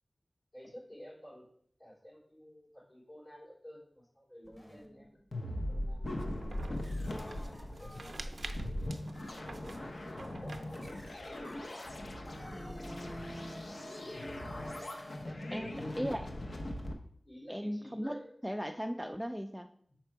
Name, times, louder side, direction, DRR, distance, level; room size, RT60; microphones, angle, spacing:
voice 1, 0.5-1.5 1.8-10.6 13.0-13.1 15.2-16.1 17.2-18.4 19.9-20.0, equal, 55° left, -6 dB, 2.9 m, -53 dB
sound 1, 4.4-5.6 6.2-6.3 6.8-15.3, equal, 25° left, 1.3 m, -53 dB
sound 2, 5.3-16.9, left 1 dB, 90° left, 0.8 m, -40 dB
sound 3, 6.1-11.2, right 3 dB, 75° right, 0.4 m, -50 dB
voice 2, 12.5-13.6 15.5-16.2 17.5-19.7, equal, ahead, 6 dB, 0.4 m, -38 dB
5.8 x 4.3 x 4.6 m, 0.63 s
wide cardioid pair, 60°, 0 cm